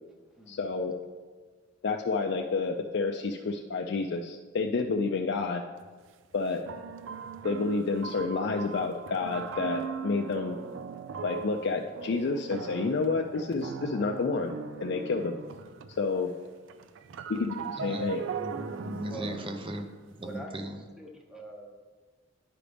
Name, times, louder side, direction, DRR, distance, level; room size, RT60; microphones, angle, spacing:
voice 1, 0.5-0.9 1.8-5.6 6.3-6.6 7.4-10.6 11.2-14.5 14.8-15.4 16.0-16.3 17.3-17.6 17.8-18.2, left 4 dB, 60° left, 2 dB, 0.4 m, -29 dB
sound 1, 5.8-5.9 6.7-16.2 16.4-20.3, right 6 dB, 75° right, 0.4 m, -39 dB
voice 2, 17.8-18.1 18.4-19.8 20.2-20.8, right 1 dB, 30° right, 6 dB, 0.6 m, -37 dB
voice 3, 20.2-20.5 21.0-21.7, right 2 dB, 5° right, 0 dB, 0.9 m, -43 dB
9.8 x 5.0 x 3.4 m, 1.4 s
head